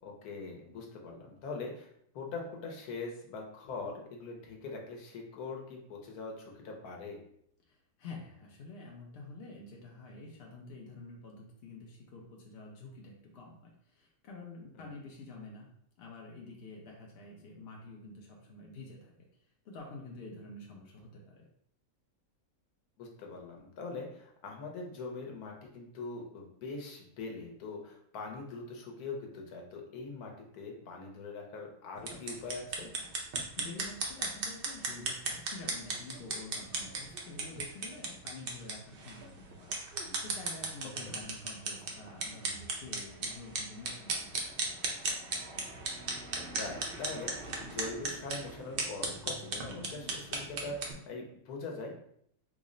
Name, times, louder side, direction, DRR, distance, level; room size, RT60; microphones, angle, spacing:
voice 1, 0.0-7.2 14.7-14.9 23.0-32.9 41.0-41.2 46.5-51.9, left 3 dB, 80° left, 1 dB, 1.2 m, -42 dB
voice 2, 7.7-15.7 16.0-19.3 19.6-21.5 33.6-39.8 40.2-44.8, left 3 dB, 60° left, -1 dB, 0.6 m, -48 dB
sound 1, 32.0-50.9, right 3 dB, 60° right, 0.6 m, -37 dB
3.6 x 2.0 x 3.7 m, 0.69 s
omnidirectional pair, 1.6 m